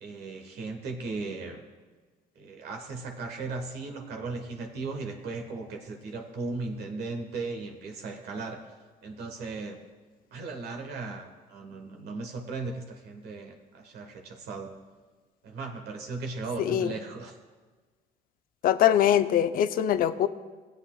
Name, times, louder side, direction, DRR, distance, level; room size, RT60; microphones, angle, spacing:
voice 1, 0.0-1.6 2.3-8.6 9.0-9.8 10.3-14.7 15.4-17.4, right 3 dB, 70° right, 4 dB, 1.3 m, -37 dB
voice 2, 16.6-16.9 18.6-20.3, left 10 dB, 60° left, 11 dB, 0.5 m, -22 dB
16.5 x 8.0 x 2.3 m, 1.4 s
cardioid pair, 110°, 17 cm